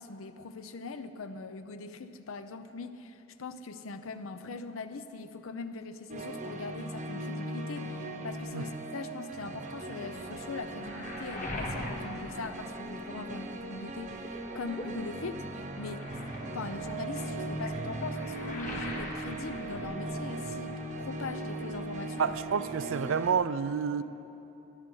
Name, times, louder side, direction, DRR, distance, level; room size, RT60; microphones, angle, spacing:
voice 1, 0.0-16.0 16.5-20.7 21.0-22.3, left 3 dB, 85° left, 0.6 m, -41 dB
sound 1, 6.1-23.3, right 2 dB, 40° right, 0.9 m, -39 dB
Waves surf, 10.2-13.4 13.7-20.6 20.9-21.8, left 1 dB, 40° left, 1.6 m, -43 dB
voice 2, 22.2-24.0, right 6 dB, 70° right, 0.4 m, -29 dB
13.0 x 10.5 x 5.6 m
head